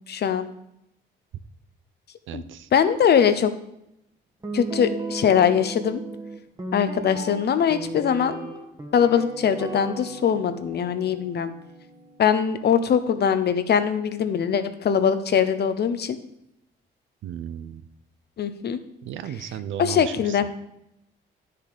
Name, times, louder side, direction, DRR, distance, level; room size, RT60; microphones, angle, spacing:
voice 1, 0.1-0.5 2.3-2.4 2.7-3.5 4.5-6.0 6.7-8.3 8.9-11.5 12.2-16.2 18.4-18.8 19.8-20.5, left 8 dB, 55° left, 11 dB, 0.9 m, -22 dB
voice 2, 2.3-2.7 17.2-17.8 19.0-20.4, right 10 dB, 75° right, 13 dB, 0.7 m, -35 dB
Guitar, 4.4-12.6, right 2 dB, 20° right, 1.6 m, -35 dB
10.5 x 6.9 x 5.1 m, 0.82 s
cardioid pair, 90°, 20 cm